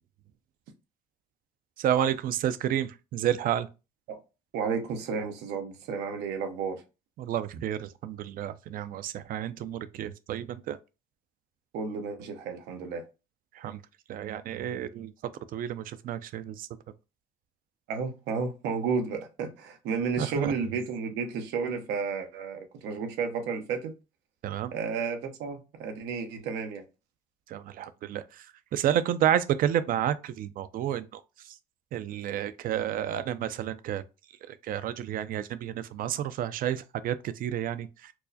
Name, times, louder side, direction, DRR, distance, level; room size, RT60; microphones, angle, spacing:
voice 1, 1.8-3.7 7.2-10.8 13.6-13.8 14.1-15.1 15.5-16.7 20.2-20.5 24.4-24.7 27.5-28.2 28.7-31.2 31.9-34.0 34.5-38.1, right 10 dB, 55° right, 0.4 m, -30 dB
voice 2, 4.5-6.8 11.7-13.1 17.9-23.9 24.7-26.8, right 5 dB, 90° right, 0.8 m, -32 dB
4.6 x 2.1 x 2.6 m
cardioid pair, 110°, 17 cm